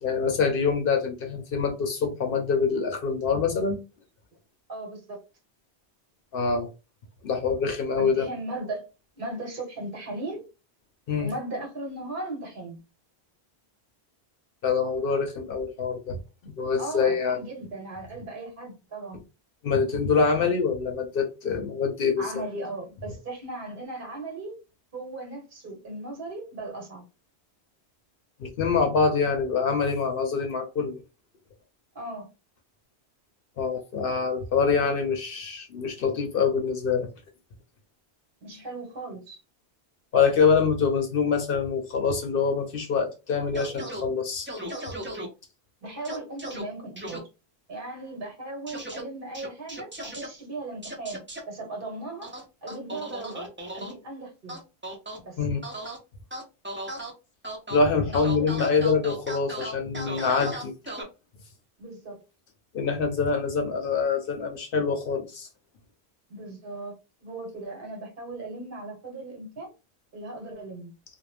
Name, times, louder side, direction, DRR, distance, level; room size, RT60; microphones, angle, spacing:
voice 1, 0.0-3.8 6.3-6.7 7.2-8.3 11.1-11.3 14.6-16.2 16.4-17.4 19.6-22.2 28.4-31.0 33.6-37.1 40.1-44.5 55.4-55.6 57.7-60.7 62.7-65.5, left 5 dB, 60° left, 0.7 m, -25 dB
voice 2, 4.7-5.2 8.0-8.8 9.1-10.4 11.2-12.8 16.8-19.2 22.2-24.6 24.9-27.0 31.9-32.3 38.4-39.4 45.8-47.2 47.7-52.3 52.6-54.6 55.2-55.4 58.2-58.8 61.8-62.2 66.3-69.7 70.1-70.9, right 2 dB, 55° right, 1.2 m, -37 dB
sound 1, 43.5-44.0 44.5-45.3 46.0-46.6 47.0-47.2 48.7-49.0 49.3-50.3 50.8-51.4 52.2-53.9 54.5-55.2 55.6-56.0 56.3-57.1 57.4-57.8 58.1-61.0, right 1 dB, 15° right, 0.4 m, -36 dB
2.4 x 2.0 x 3.2 m
omnidirectional pair, 1.1 m